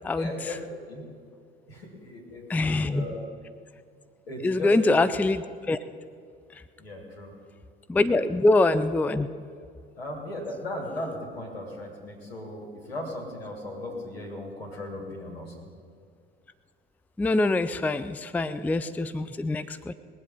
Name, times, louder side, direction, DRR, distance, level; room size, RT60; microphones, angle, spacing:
voice 1, 0.1-0.6 0.9-1.0 1.7-3.2 4.3-4.8 6.8-7.3 8.0-8.2 10.0-15.7, left 1 dB, 80° left, 0 dB, 2.8 m, -37 dB
voice 2, 2.5-3.1 4.4-5.8 7.9-9.3 17.2-19.9, left 2 dB, 5° left, 14 dB, 0.4 m, -24 dB
20.5 x 7.9 x 5.6 m, 2.3 s
figure-of-eight pair, 60°, 30 cm